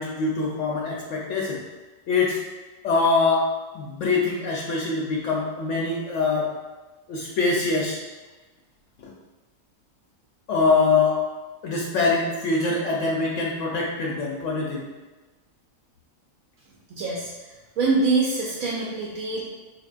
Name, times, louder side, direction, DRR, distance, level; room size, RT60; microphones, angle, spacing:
voice 1, 0.0-1.6 2.1-2.4 2.8-6.5 7.1-8.0 9.0-9.1 10.5-11.2 11.6-14.9, left 4 dB, 70° left, -2 dB, 0.9 m, -24 dB
voice 2, 16.9-17.3 17.8-19.4, right 3 dB, 80° right, -3 dB, 1.0 m, -24 dB
4.4 x 3.2 x 2.4 m, 1.2 s
omnidirectional pair, 1.4 m